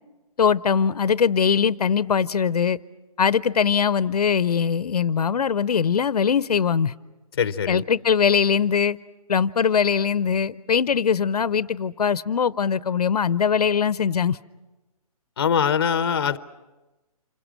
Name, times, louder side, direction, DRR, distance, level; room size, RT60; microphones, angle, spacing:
voice 1, 0.4-2.8 3.2-6.9 7.7-9.0 9.3-14.4, left 7 dB, 80° left, 18 dB, 0.7 m, -21 dB
voice 2, 7.3-7.8 15.4-16.4, left 7 dB, 40° left, 14 dB, 0.8 m, -22 dB
28.0 x 25.5 x 6.2 m, 1.1 s
hypercardioid pair, 175°, 19 cm